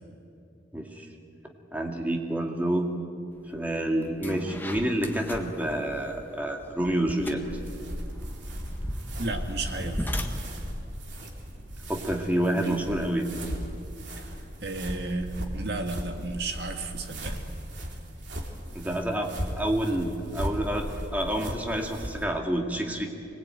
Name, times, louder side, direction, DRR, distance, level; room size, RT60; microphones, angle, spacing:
voice 1, 0.7-1.1 1.7-2.9 3.5-7.4 11.9-13.3 18.7-23.1, right 1 dB, 10° right, 1 dB, 2.2 m, -28 dB
sound 1, 3.5-3.6 4.0-12.3, equal, 10° left, 1.6 m, -38 dB
sound 2, 7.2-22.2, equal, 80° right, 3.2 m, -37 dB
voice 2, 9.2-10.2 12.6-12.8 14.6-17.4, right 2 dB, 60° right, 4 dB, 2.2 m, -33 dB
25.0 x 20.0 x 9.1 m, 2.6 s
head